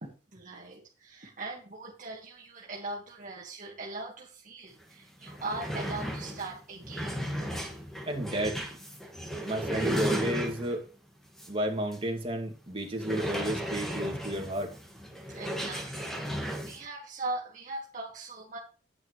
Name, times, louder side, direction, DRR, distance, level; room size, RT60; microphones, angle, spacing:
voice 1, 0.0-7.2 15.3-18.6, right 2 dB, 50° right, -2 dB, 1.7 m, -40 dB
sound 1, 4.8-4.9 5.2-10.9 11.4-11.5 11.9-12.0 13.0-16.8, equal, ahead, 1.8 m, -35 dB
voice 2, 8.1-8.6 9.4-10.9 11.5-14.7, right 1 dB, 30° right, 1 dB, 2.3 m, -32 dB
9.5 x 9.5 x 3.2 m, 0.36 s
head